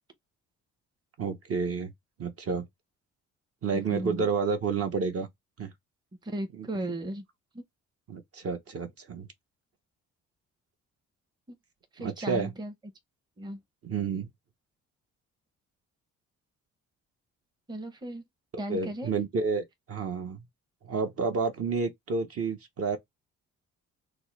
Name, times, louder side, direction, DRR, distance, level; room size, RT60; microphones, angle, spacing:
voice 1, 1.2-1.9 2.2-2.6 3.6-5.3 5.6-5.7 6.6-6.7 8.1-9.3 12.0-12.5 13.8-14.3 18.7-20.4 20.8-23.0, right 5 dB, 50° right, 0.9 m, -30 dB
voice 2, 3.7-4.3 6.2-7.2 7.5-7.6 11.5-11.6 11.9-12.7 13.4-13.6 17.7-18.2 18.6-19.1, right 1 dB, 15° right, 0.7 m, -36 dB
3.5 x 2.0 x 3.1 m
cardioid pair, 90°, 30 cm